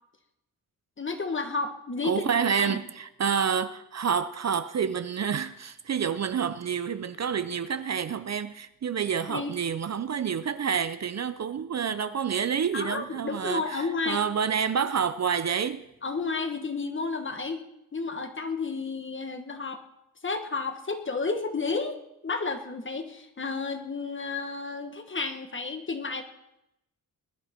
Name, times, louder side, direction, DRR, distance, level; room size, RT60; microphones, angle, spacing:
voice 1, 1.0-2.2 2.6-2.8 9.3-9.5 12.7-14.2 16.0-17.6 17.9-19.8 20.2-26.2, left 4 dB, 35° left, 1.4 m, -31 dB
voice 2, 2.0-15.9, right 7 dB, 50° right, 0.6 m, -28 dB
21.0 x 11.0 x 4.4 m
wide cardioid pair, 135°, 35 cm